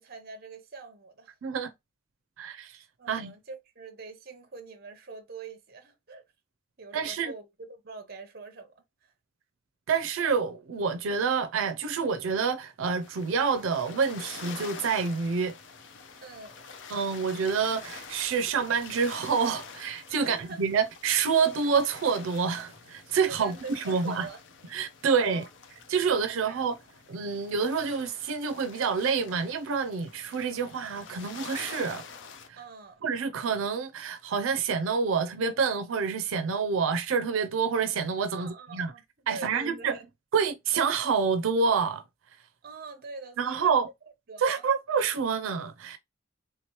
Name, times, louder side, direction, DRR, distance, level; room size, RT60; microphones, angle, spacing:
voice 1, 0.0-1.3 3.0-6.2 6.8-9.1 16.2-16.7 20.2-20.6 23.3-24.4 25.0-25.5 26.1-26.6 32.5-33.1 38.3-39.0 39.3-40.1 42.6-43.8 44.3-44.7, right 4 dB, 50° right, 0.7 m, -44 dB
voice 2, 2.4-3.3 6.9-7.3 9.9-15.5 16.9-24.3 24.7-25.4 25.9-26.7 27.1-32.0 32.5-32.6 33.0-38.9 39.3-40.0 40.3-42.0 43.4-43.9 44.4-46.0, right 5 dB, 90° right, 0.4 m, -27 dB
sound 1, 13.0-32.5, left 5 dB, 70° left, 0.5 m, -47 dB
3.4 x 2.9 x 2.9 m
head